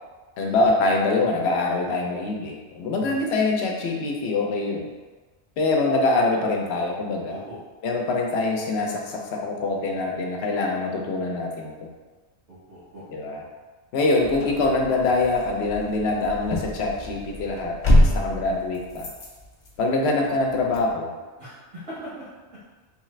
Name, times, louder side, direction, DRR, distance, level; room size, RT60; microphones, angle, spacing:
voice 1, 0.4-4.9 5.6-7.4 7.8-11.7 13.1-13.4 13.9-19.1 19.8-21.1, left 2 dB, 70° left, 0 dB, 0.8 m, -24 dB
voice 2, 7.3-7.6 12.5-13.0 21.4-22.3, equal, 85° right, -11 dB, 1.5 m, -40 dB
sound 1, 14.2-20.9, left 1 dB, 45° left, 0.4 m, -26 dB
3.3 x 2.4 x 3.1 m, 1.3 s
omnidirectional pair, 1.2 m